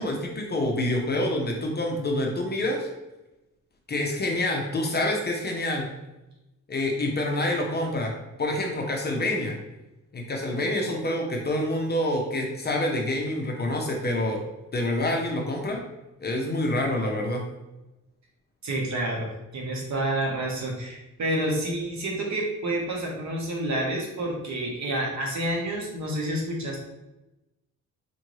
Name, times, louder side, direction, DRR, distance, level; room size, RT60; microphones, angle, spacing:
voice 1, 0.0-2.9 3.9-5.9 6.7-8.1 8.4-9.6 10.1-14.4 14.7-15.8 16.2-17.4, left 1 dB, 30° left, 1 dB, 0.6 m, -27 dB
voice 2, 18.6-26.8, right 1 dB, 60° right, -1 dB, 1.1 m, -29 dB
4.4 x 2.6 x 3.1 m, 0.98 s
cardioid pair, 130°, 32 cm